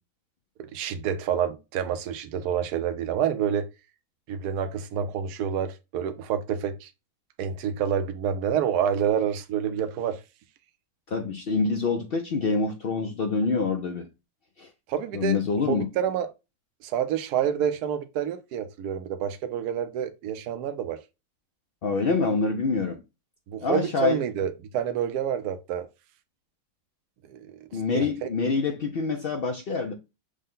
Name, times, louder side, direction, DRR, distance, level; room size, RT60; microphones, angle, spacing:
voice 1, 0.6-3.7 4.3-6.9 7.4-10.2 14.9-15.4 15.7-16.3 16.8-21.0 23.5-25.9 27.2-27.6 27.9-28.3, right 8 dB, 70° right, 1.1 m, -28 dB
voice 2, 11.1-14.1 14.6-14.7 15.1-15.8 21.8-23.0 23.6-24.2 27.7-29.9, left 4 dB, 90° left, 0.5 m, -26 dB
6.4 x 2.2 x 3.8 m
omnidirectional pair, 1.8 m